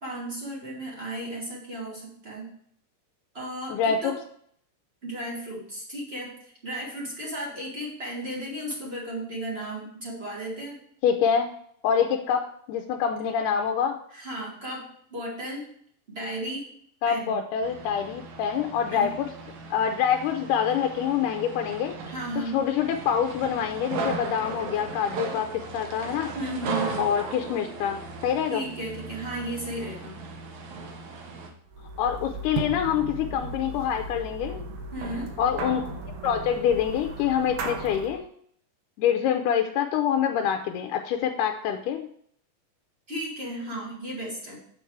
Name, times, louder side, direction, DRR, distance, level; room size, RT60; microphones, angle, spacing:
voice 1, 0.0-2.5 3.3-4.2 5.0-10.8 14.1-15.6 16.1-16.7 17.1-17.4 18.9-19.1 22.0-22.6 26.3-27.1 28.4-30.2 34.9-35.3 43.1-44.6, right 1 dB, 45° right, -3 dB, 0.8 m, -34 dB
voice 2, 3.7-4.1 11.0-11.5 11.8-14.0 17.0-19.3 19.7-22.0 22.5-26.3 27.0-28.6 32.0-34.6 35.4-35.8 36.2-38.3 39.0-42.1, left 8 dB, 80° left, 5 dB, 1.9 m, -26 dB
sound 1, 17.6-31.5, right 3 dB, 65° right, 2.0 m, -37 dB
sound 2, 31.7-38.2, right 3 dB, 85° right, 2.7 m, -36 dB
7.9 x 5.8 x 4.6 m, 0.64 s
omnidirectional pair, 4.1 m